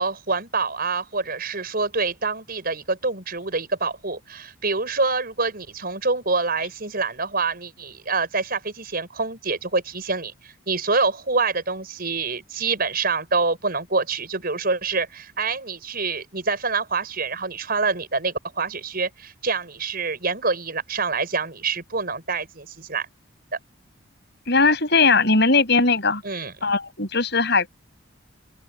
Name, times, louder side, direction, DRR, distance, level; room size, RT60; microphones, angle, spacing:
voice 1, 0.0-23.1 26.2-26.5, right 4 dB, 50° right, 5.7 m, -26 dB
voice 2, 24.5-26.2 26.6-27.7, left 3 dB, 55° left, 6.5 m, -19 dB
open air
head